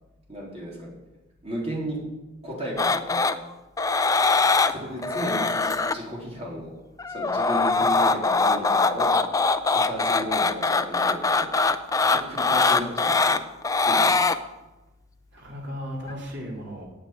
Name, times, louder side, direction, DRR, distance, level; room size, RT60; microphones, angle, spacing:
voice 1, 0.3-0.9 1.4-2.0 2.4-3.3 4.6-6.7 7.1-9.2 9.7-11.5 12.0-13.4 13.8-14.2, equal, 30° right, -4 dB, 3.8 m, -34 dB
sound 1, 2.8-3.3 3.8-4.7 5.0-5.9 7.0-14.4 16.1-16.2, left 4 dB, 15° left, 0.4 m, -22 dB
voice 2, 4.7-5.4 15.3-16.9, equal, 55° right, -2 dB, 3.5 m, -37 dB
9.1 x 8.0 x 8.6 m, 1.0 s
head